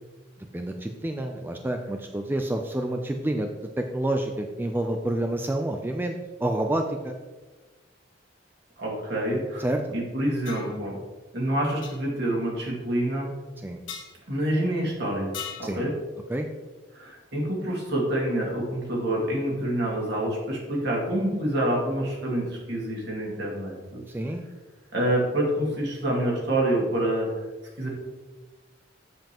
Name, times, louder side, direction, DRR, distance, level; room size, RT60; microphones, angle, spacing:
voice 1, 0.4-3.5 3.8-7.2 9.6-10.0 13.6-13.8 15.6-15.8 16.3-16.5 24.1-24.4, right 1 dB, 10° right, 4 dB, 0.4 m, -28 dB
voice 2, 8.8-9.6 9.9-11.0 11.3-13.3 14.3-15.3 15.6-15.9 16.9-24.0 24.9-27.3 27.8-27.9, right 1 dB, 60° right, -3 dB, 2.2 m, -27 dB
sound 1, 10.5-10.7 11.8-12.0 13.9-14.1 15.3-15.7, left 8 dB, 90° left, 1.3 m, -37 dB
7.7 x 7.2 x 3.0 m, 1.2 s
head